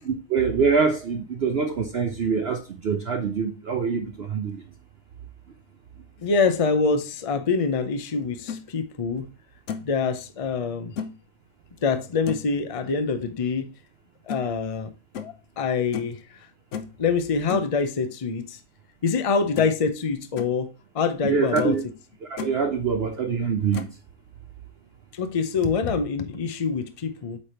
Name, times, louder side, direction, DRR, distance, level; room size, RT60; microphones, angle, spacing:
voice 1, 0.1-4.6 21.2-21.8 22.3-23.9, right 5 dB, 55° right, 0.7 m, -24 dB
voice 2, 6.2-9.3 9.8-11.0 11.8-13.7 14.3-14.9 15.2-16.2 17.0-18.6 19.0-20.7 20.9-21.8 25.1-27.4, left 5 dB, 35° left, 0.6 m, -25 dB
sound 1, 8.2-8.6 9.2-9.3 9.7-10.0 11.0-11.2 12.3-12.5 14.3-14.4 15.1-15.4 15.9-16.2 16.7-17.0 17.5-17.7 19.1-19.2 19.5-19.8 20.2-20.5 21.1-21.2 21.6-21.8 22.1-22.6 23.7-24.0, left 7 dB, 60° left, 1.0 m, -34 dB
8.5 x 3.5 x 4.3 m
omnidirectional pair, 1.6 m